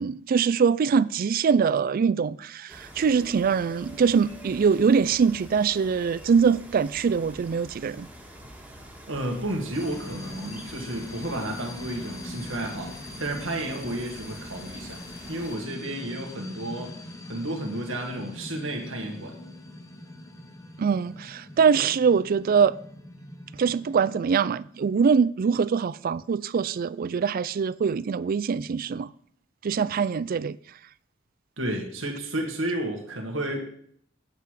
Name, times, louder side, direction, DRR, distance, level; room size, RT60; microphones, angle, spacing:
voice 1, 0.0-8.1 20.8-22.7 23.6-29.1 29.6-30.6, right 6 dB, 45° right, 0.3 m, -23 dB
sound 1, 2.7-15.6, equal, 10° right, 1.8 m, -46 dB
voice 2, 9.1-15.0 15.3-16.9 17.2-19.4 31.6-33.6, right 1 dB, 75° right, 2.0 m, -32 dB
sound 2, 9.7-24.2, left 1 dB, 15° left, 0.9 m, -42 dB
8.4 x 8.0 x 4.9 m
head